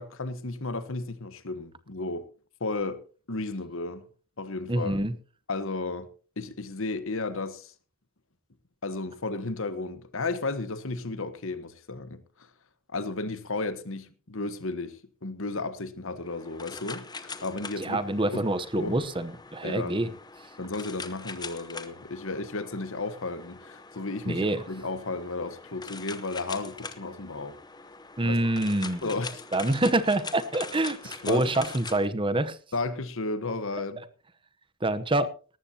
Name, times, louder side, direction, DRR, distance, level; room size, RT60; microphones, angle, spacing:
voice 1, 0.0-2.3 2.6-3.0 3.3-4.0 4.4-5.0 5.5-6.1 6.4-7.7 8.8-12.2 12.9-18.0 18.3-18.4 18.7-19.1 19.6-20.2 20.6-27.6 28.2-28.4 29.0-29.3 31.2-31.5 32.7-34.0, left 3 dB, 60° left, 1.3 m, -33 dB
voice 2, 4.7-5.1 17.8-20.1 24.3-24.6 28.2-29.1 29.5-32.6 34.8-35.3, right 1 dB, 25° right, 0.9 m, -26 dB
sound 1, 16.2-32.1, left 4 dB, 20° left, 1.0 m, -43 dB
19.0 x 14.0 x 2.9 m
head